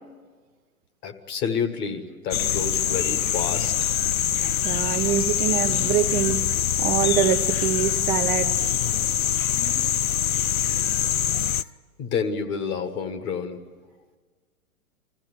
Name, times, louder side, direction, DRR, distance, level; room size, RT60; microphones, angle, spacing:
voice 1, 1.0-3.7 9.4-9.5 12.0-13.6, left 6 dB, 25° left, 6 dB, 1.5 m, -29 dB
sound 1, 2.3-11.6, left 10 dB, 70° left, 0.6 m, -24 dB
voice 2, 4.6-8.8, right 10 dB, 25° right, 4 dB, 0.7 m, -25 dB
24.5 x 15.0 x 10.0 m, 1.5 s
figure-of-eight pair, 110°, 43 cm